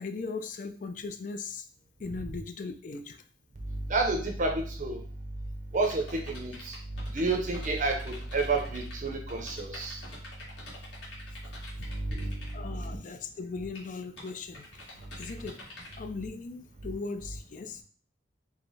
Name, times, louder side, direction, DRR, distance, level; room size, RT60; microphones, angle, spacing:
voice 1, 0.0-1.7 2.0-3.2 11.8-11.9 12.5-15.6 16.0-17.8, left 4 dB, 45° left, 8 dB, 0.4 m, -38 dB
voice 2, 3.9-5.0 5.7-6.8 7.1-10.0 11.9-12.4 12.7-13.0, right 3 dB, 40° right, 3 dB, 0.6 m, -30 dB
sound 1, 5.7-12.5 13.7-13.9 14.2-15.9, left 2 dB, 65° left, 1.6 m, -46 dB
4.8 x 2.1 x 4.0 m, 0.43 s
head